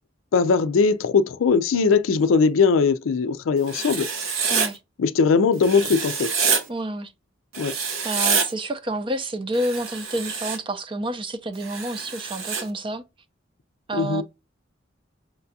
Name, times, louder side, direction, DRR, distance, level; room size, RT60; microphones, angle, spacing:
voice 1, 0.3-4.1 5.0-6.3 7.6-7.8 13.9-14.2, left 5 dB, 85° left, 0.4 m, -20 dB
Writing, 3.7-4.7 5.6-6.6 7.5-8.5 9.5-10.6 11.6-12.6, right 5 dB, 90° right, 1.1 m, -26 dB
voice 2, 6.7-7.1 7.7-13.0 13.9-14.2, right 1 dB, 25° right, 0.5 m, -29 dB
5.9 x 2.3 x 2.7 m
head